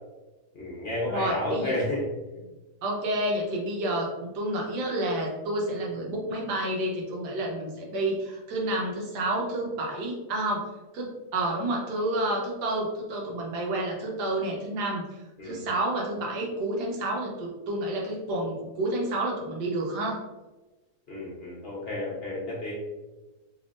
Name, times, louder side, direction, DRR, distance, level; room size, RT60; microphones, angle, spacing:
voice 1, 0.5-2.0 2.3-2.4 15.4-15.6 21.1-22.8, left 1 dB, 45° left, -5 dB, 1.0 m, -31 dB
voice 2, 1.1-1.8 2.8-10.6 10.9-20.2, right 1 dB, 85° right, -1 dB, 1.4 m, -29 dB
3.5 x 3.4 x 2.5 m, 1.1 s
omnidirectional pair, 1.7 m